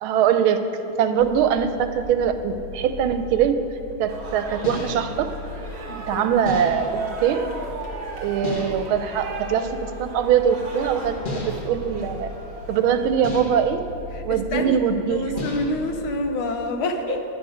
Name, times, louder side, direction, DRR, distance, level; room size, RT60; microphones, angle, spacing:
voice 1, 0.0-0.7 1.0-3.6 4.0-5.3 6.1-7.5 8.2-12.3 12.7-13.9 14.2-15.3 17.1-17.2, right 8 dB, 85° right, 9 dB, 1.4 m, -22 dB
sound 1, 1.2-16.2, left 2 dB, 65° left, 1.5 m, -39 dB
sound 2, 2.8-2.9 4.6-5.2 6.5-7.1 8.4-9.0 11.2-11.9 13.2-13.8 15.4-15.9, left 2 dB, 35° left, 0.9 m, -33 dB
sound 3, 4.1-13.1, right 3 dB, 35° right, 1.2 m, -36 dB
voice 2, 5.9-6.2 14.1-14.8 15.1-17.2, left 2 dB, 80° left, 5 dB, 1.7 m, -27 dB
10.5 x 9.7 x 5.0 m, 2.8 s
omnidirectional pair, 2.3 m